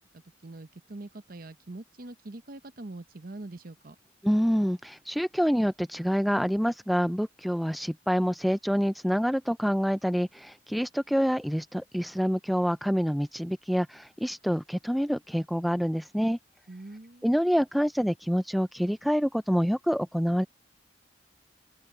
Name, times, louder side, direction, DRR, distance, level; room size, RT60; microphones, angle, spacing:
voice 1, 0.1-4.0 16.7-17.3, right 2 dB, 50° right, 0.9 m, -43 dB
voice 2, 4.2-16.4 17.2-20.4, equal, ahead, 0.3 m, -27 dB
head